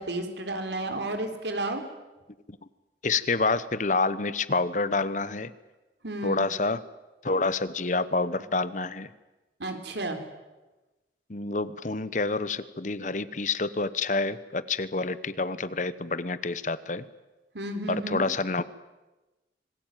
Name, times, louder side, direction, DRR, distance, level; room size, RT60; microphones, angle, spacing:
voice 1, 0.0-1.8 6.0-6.5 9.6-10.2 17.5-18.2, right 1 dB, 80° right, 6 dB, 3.7 m, -32 dB
voice 2, 3.0-5.5 6.2-6.8 7.2-9.1 11.3-17.0 17.9-18.6, left 3 dB, 45° left, 16 dB, 1.0 m, -28 dB
26.5 x 20.0 x 9.2 m, 1.1 s
head